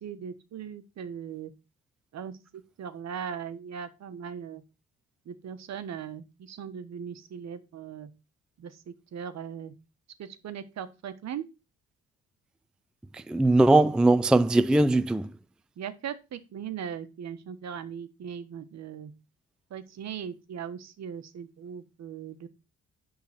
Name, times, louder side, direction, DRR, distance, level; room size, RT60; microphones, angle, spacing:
voice 1, 0.0-1.5 2.1-2.3 2.8-4.6 5.3-8.1 8.6-9.7 10.2-11.4 15.8-19.1 19.7-22.5, right 8 dB, 60° right, 1.2 m, -39 dB
voice 2, 13.1-15.3, right 2 dB, 5° right, 0.4 m, -21 dB
10.5 x 3.9 x 5.9 m
cardioid pair, 90°, 30 cm